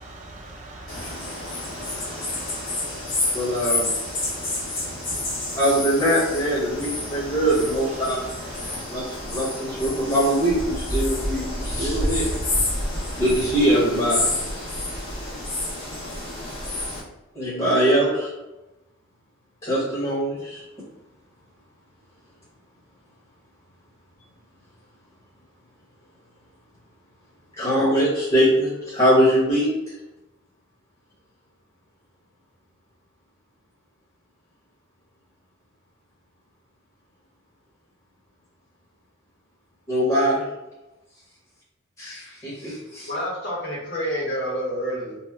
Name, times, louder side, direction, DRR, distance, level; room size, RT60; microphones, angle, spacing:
voice 1, 0.0-5.6 6.7-7.3 8.0-8.2 8.5-8.8, right 1 dB, 35° right, -1 dB, 0.6 m, -41 dB
sound 1, 0.9-17.0, left 2 dB, 80° left, 1.2 m, -29 dB
voice 2, 3.3-3.9 5.6-8.2 8.9-12.3 13.2-14.3 17.3-18.3 19.6-20.6 27.6-29.9 39.9-40.4 42.0-43.1, equal, 30° left, -8 dB, 0.9 m, -22 dB
voice 3, 43.1-45.2, equal, 55° left, -5 dB, 1.1 m, -28 dB
2.9 x 2.0 x 3.4 m, 1.0 s
head